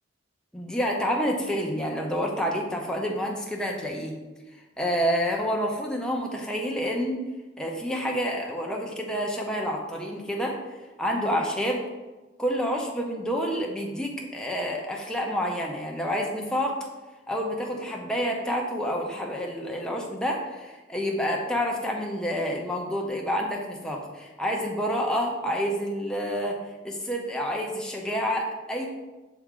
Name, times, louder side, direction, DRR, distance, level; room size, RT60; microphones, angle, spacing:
voice 1, 0.5-4.1 4.8-7.2 7.6-10.6 11.0-11.8 12.4-16.8 17.3-26.6 26.8-28.9, equal, 5° left, 0 dB, 0.6 m, -28 dB
6.0 x 4.4 x 3.7 m, 1.2 s
head